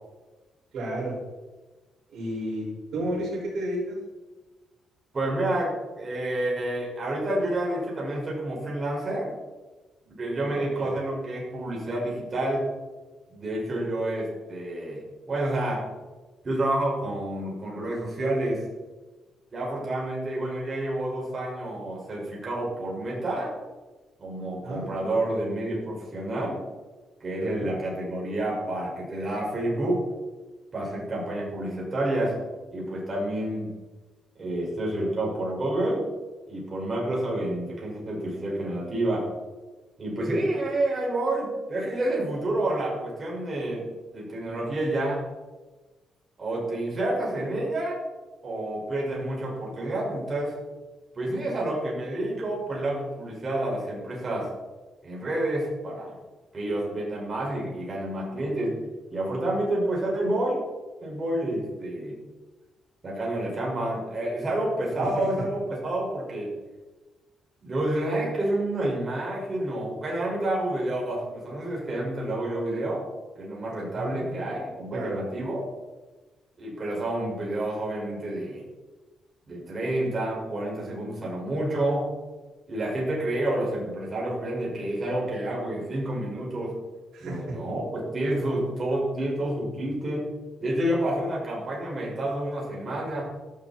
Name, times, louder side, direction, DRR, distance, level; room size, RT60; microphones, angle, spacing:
voice 1, 0.7-1.1 2.1-2.7 2.9-4.0 10.4-10.9 24.6-25.2 27.4-27.7 73.9-74.6 74.9-75.2 87.1-87.4, right 1 dB, 65° right, -6 dB, 6.3 m, -32 dB
voice 2, 5.1-9.4 10.0-12.7 13.3-15.9 16.4-18.7 19.5-23.5 24.2-26.6 27.2-30.0 30.7-32.4 32.7-33.7 34.4-36.1 36.5-39.3 40.0-45.2 46.4-48.0 48.4-50.6 51.1-54.5 55.0-56.2 56.5-58.8 59.1-60.6 61.0-62.2 63.0-66.5 67.6-73.1 73.4-75.7 76.6-78.6 79.5-82.1 82.7-86.8 87.2-90.3 90.6-93.3, right 1 dB, 25° right, -3 dB, 6.2 m, -29 dB
17.5 x 13.0 x 4.6 m, 1.2 s
cardioid pair, 155°, 0 cm